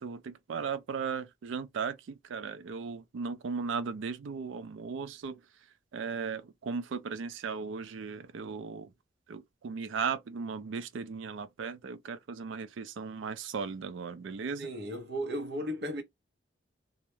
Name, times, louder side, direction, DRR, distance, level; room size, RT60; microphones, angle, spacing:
voice 1, 0.0-5.4 5.9-8.9 9.3-14.7, right 5 dB, 80° right, 0.4 m, -37 dB
voice 2, 14.6-16.0, equal, 60° right, 0.8 m, -35 dB
2.3 x 2.1 x 3.0 m
head